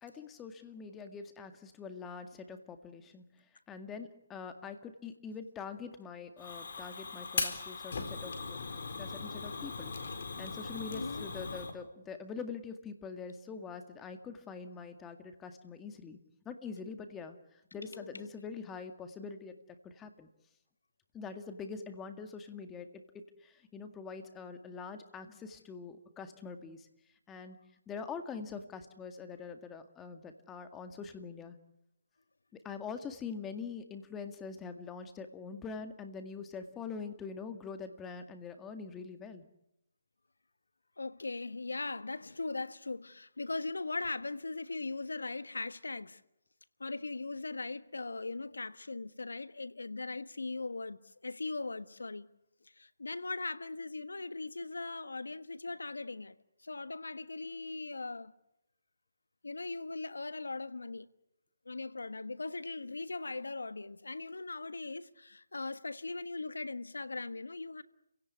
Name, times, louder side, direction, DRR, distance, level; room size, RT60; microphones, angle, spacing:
voice 1, 0.0-3.2 3.7-8.6 9.0-9.9 10.4-16.2 16.5-19.6 19.8-20.3 21.1-26.9 27.3-27.6 27.9-31.6 32.5-39.4, left 5 dB, 15° left, 2.0 m, -44 dB
Fire, 6.4-11.7, left 4 dB, 60° left, 4.1 m, -39 dB
voice 2, 10.9-11.3 17.7-18.3 41.0-46.2 46.8-52.3 52.6-56.4 56.6-58.3 59.4-61.1 61.6-67.8, left 3 dB, 85° left, 1.3 m, -39 dB
29.5 x 17.0 x 9.7 m
figure-of-eight pair, 150°, 0 cm